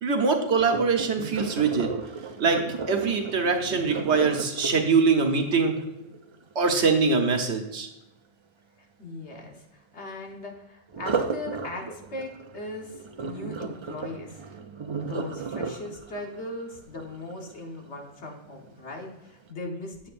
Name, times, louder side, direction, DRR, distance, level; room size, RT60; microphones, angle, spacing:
voice 1, 0.0-1.9 2.4-2.6 2.9-5.7 6.5-7.9, right 4 dB, 85° right, 4 dB, 1.3 m, -23 dB
Sink (filling or washing), 0.6-6.5 10.9-17.9 18.5-18.8 19.3-19.4, right 5 dB, 50° right, 0.3 m, -35 dB
voice 2, 9.0-14.4 15.0-20.1, left 2 dB, 90° left, 1 dB, 1.7 m, -38 dB
8.9 x 7.4 x 2.5 m, 0.92 s
omnidirectional pair, 1.1 m